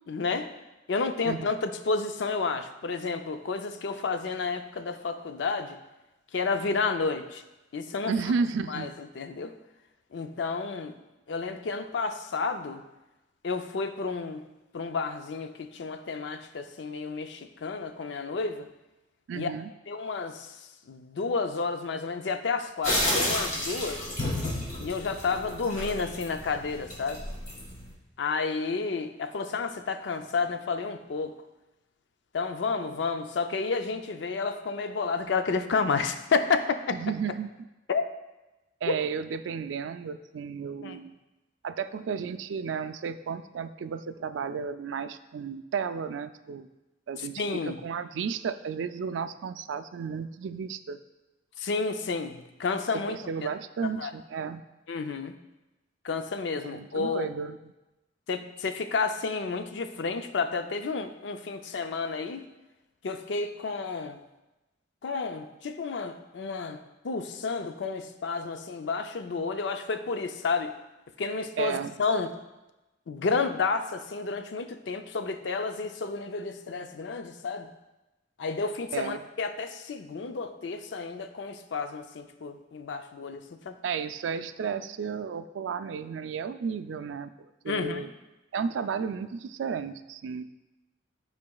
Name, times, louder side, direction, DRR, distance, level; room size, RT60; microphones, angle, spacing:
voice 1, 0.1-0.5 0.9-5.8 6.3-7.4 7.7-8.1 8.7-8.9 9.1-9.5 10.1-11.0 11.3-12.8 13.4-14.5 14.7-18.7 19.3-19.5 19.9-24.1 24.8-27.2 28.2-31.4 32.3-36.8 37.9-38.0 38.9-39.0 40.8-41.0 47.2-47.8 51.6-53.2 53.4-53.5 54.0-54.1 54.9-55.3 56.0-57.3 58.3-62.5 63.0-64.2 65.0-66.8 67.0-70.7 71.2-72.3 73.1-77.7 78.4-83.8 87.7-88.1, left 4 dB, 70° left, 8 dB, 0.5 m, -31 dB
voice 2, 1.2-1.5 8.1-8.9 19.3-19.7 36.9-37.5 38.8-41.1 41.6-46.7 47.1-51.0 52.9-54.6 56.6-57.7 71.6-72.0 78.9-79.2 83.8-88.1 88.5-90.4, right 6 dB, 80° right, 12 dB, 0.3 m, -33 dB
sound 1, 22.8-27.9, left 1 dB, 45° left, 1.9 m, -31 dB
11.5 x 4.7 x 2.3 m, 1.0 s
head